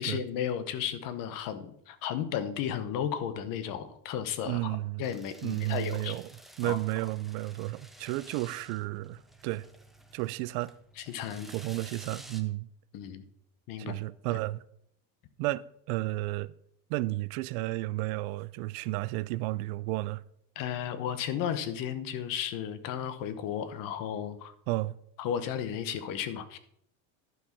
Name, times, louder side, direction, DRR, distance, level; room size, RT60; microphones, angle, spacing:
voice 1, 0.0-6.2 6.6-6.8 11.0-11.5 12.9-13.2 13.7-14.0 14.3-14.4 20.6-24.5 25.2-26.6, left 9 dB, 50° left, 0.9 m, -34 dB
voice 2, 4.5-5.1 5.4-6.3 6.6-9.6 10.1-10.7 11.5-12.7 13.8-14.6 15.4-16.5 16.9-20.2 24.7-25.0, right 18 dB, 75° right, 0.5 m, -32 dB
sound 1, 5.0-12.4, right 1 dB, ahead, 0.4 m, -52 dB
11.5 x 4.9 x 5.8 m
cardioid pair, 155°, 42 cm